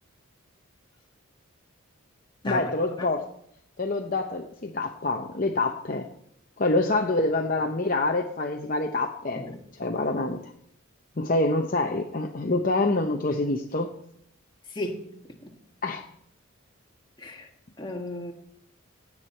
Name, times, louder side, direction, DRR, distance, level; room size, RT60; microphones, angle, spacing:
voice 1, 2.4-3.3 3.8-6.1 6.6-9.4 9.8-10.5 11.2-13.9 15.8-16.0, left 2 dB, 40° left, 3 dB, 0.7 m, -26 dB
voice 2, 17.2-17.5 17.8-18.3, left 1 dB, 20° left, 2 dB, 1.5 m, -33 dB
16.5 x 8.7 x 4.4 m, 0.72 s
head